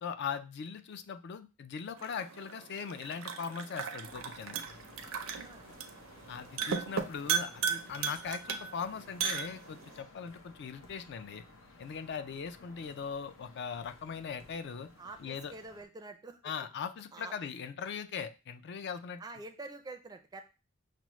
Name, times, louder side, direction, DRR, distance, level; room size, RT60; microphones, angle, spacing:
voice 1, 0.0-4.6 6.3-11.4 11.8-14.9 15.2-15.5 16.4-19.2, left 6 dB, 60° left, 10 dB, 0.4 m, -40 dB
sound 1, 2.0-10.0, right 7 dB, 80° right, 0.5 m, -37 dB
sound 2, 4.0-15.8, left 2 dB, 90° left, 0.8 m, -56 dB
voice 2, 5.2-5.7 12.2-12.3 15.0-16.4 17.1-17.3 19.2-20.4, right 2 dB, 20° right, 6 dB, 0.4 m, -47 dB
5.8 x 2.0 x 3.0 m, 0.30 s
head